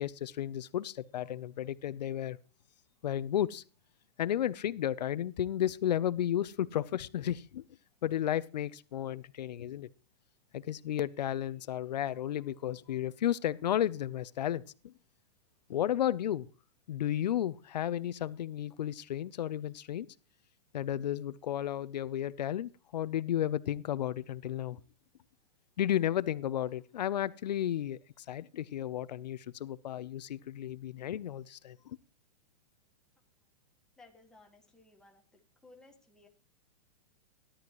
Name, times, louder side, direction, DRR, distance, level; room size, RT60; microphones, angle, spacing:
voice 1, 0.0-2.4 3.0-3.6 4.2-7.6 8.0-9.9 10.5-14.9 15.7-16.5 16.9-20.1 20.7-24.8 25.8-32.0, left 11 dB, 90° left, 0.6 m, -33 dB
voice 2, 34.0-36.3, left 2 dB, 5° left, 1.6 m, -59 dB
16.0 x 11.5 x 3.1 m
hypercardioid pair, 155°, 21 cm